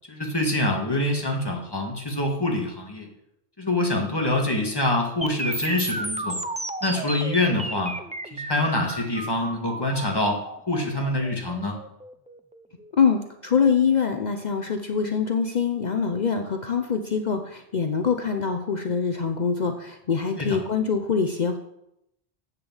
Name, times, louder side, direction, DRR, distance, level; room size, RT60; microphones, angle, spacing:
voice 1, 0.1-3.1 3.6-6.4 6.8-7.9 8.3-11.8 20.3-20.6, left 1 dB, 25° left, 0 dB, 1.8 m, -25 dB
sound 1, 5.2-13.2, right 1 dB, 10° right, 0.4 m, -33 dB
voice 2, 13.0-21.6, left 6 dB, 50° left, 6 dB, 0.7 m, -24 dB
8.1 x 6.9 x 7.2 m, 0.81 s
omnidirectional pair, 1.0 m